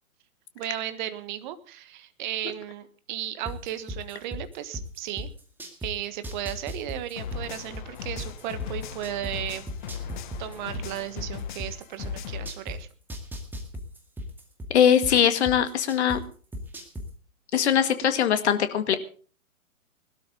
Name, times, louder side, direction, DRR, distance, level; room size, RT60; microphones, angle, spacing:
voice 1, 0.5-5.3 5.8-9.7 10.4-12.9, right 12 dB, 35° right, 11 dB, 1.5 m, -35 dB
sound 1, 3.5-5.9 6.2-9.3 9.7-12.8 13.1-16.2 16.5-17.1, equal, 5° right, 2.2 m, -36 dB
sound 2, 7.2-12.5, left 8 dB, 35° left, 1.2 m, -38 dB
voice 2, 14.7-16.2 17.5-19.0, left 9 dB, 50° left, 9 dB, 2.0 m, -21 dB
20.5 x 12.5 x 3.9 m, 0.40 s
figure-of-eight pair, 130°, 43 cm